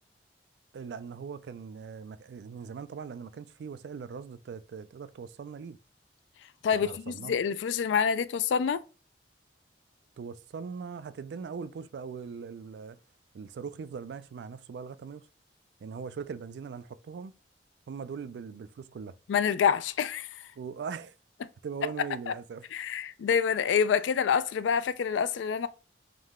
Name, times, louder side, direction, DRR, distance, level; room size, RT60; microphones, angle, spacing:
voice 1, 0.7-5.8 6.8-7.4 10.2-13.0 13.3-15.3 15.8-17.3 17.9-19.2 20.6-21.1 21.6-22.7, right 6 dB, 70° right, 0.3 m, -40 dB
voice 2, 6.6-8.8 19.3-20.3 22.3-22.4 22.7-25.7, left 7 dB, 90° left, 0.3 m, -27 dB
3.7 x 3.1 x 3.5 m
head